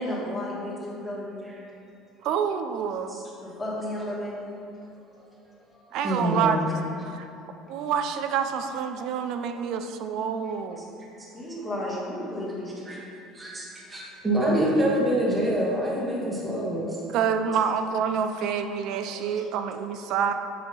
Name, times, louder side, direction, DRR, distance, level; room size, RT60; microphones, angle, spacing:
voice 1, 0.0-1.6 3.4-6.0 6.4-6.5 7.8-7.9 9.5-9.6 10.4-10.8 11.3-12.8 13.7-13.9 16.9-17.0 18.9-19.4, left 1 dB, 10° left, -7 dB, 1.5 m, -35 dB
voice 2, 2.2-3.1 5.9-6.6 7.1-7.3 7.7-10.9 17.1-20.3, right 7 dB, 60° right, 7 dB, 0.4 m, -27 dB
voice 3, 6.0-6.6 12.9-13.0 13.3-17.0, right 1 dB, 15° right, -5 dB, 1.1 m, -25 dB
7.5 x 2.9 x 5.5 m, 2.9 s
cardioid pair, 140°, 0 cm